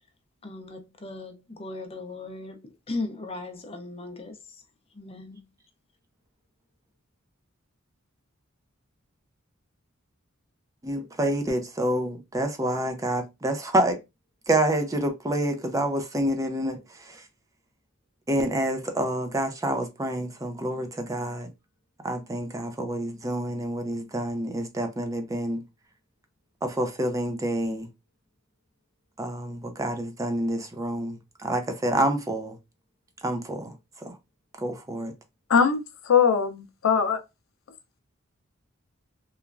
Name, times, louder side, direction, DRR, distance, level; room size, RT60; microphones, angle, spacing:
voice 1, 0.4-4.4 4.9-5.5, left 2 dB, 30° left, 0.6 m, -37 dB
voice 2, 10.8-14.0 14.5-17.2 18.3-21.5 22.0-25.6 26.6-27.9 29.2-32.6 33.2-33.7 34.0-34.2 34.6-35.1, right 1 dB, 15° right, 0.5 m, -28 dB
voice 3, 35.5-37.2, left 6 dB, 75° left, 0.5 m, -21 dB
3.1 x 2.2 x 2.3 m
head